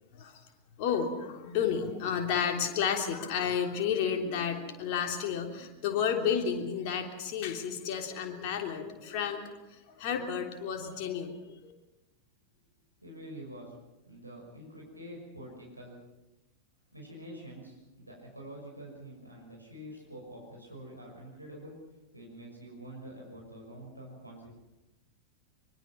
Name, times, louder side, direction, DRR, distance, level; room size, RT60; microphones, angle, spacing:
voice 1, 0.8-9.5 9.9-11.7, left 7 dB, 45° left, 2 dB, 3.4 m, -31 dB
voice 2, 13.0-13.7 14.1-16.0 16.9-21.7 22.1-24.5, right 1 dB, 85° right, -1 dB, 6.2 m, -46 dB
24.0 x 23.5 x 5.9 m, 0.98 s
figure-of-eight pair, 90°, 0 cm